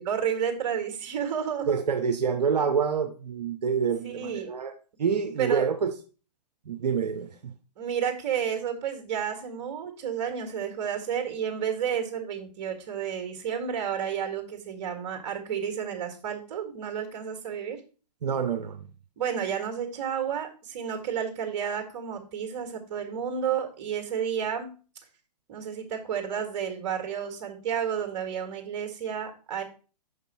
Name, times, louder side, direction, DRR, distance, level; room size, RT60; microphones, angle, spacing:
voice 1, 0.0-1.8 4.0-4.5 5.4-5.7 7.8-17.8 19.2-24.7 25.5-29.6, right 8 dB, 45° right, 5 dB, 1.8 m, -31 dB
voice 2, 1.7-4.7 5.0-5.9 6.7-7.5 18.2-18.9, right 6 dB, 75° right, 5 dB, 0.8 m, -27 dB
6.3 x 5.2 x 4.3 m, 0.37 s
hypercardioid pair, 125°, 21 cm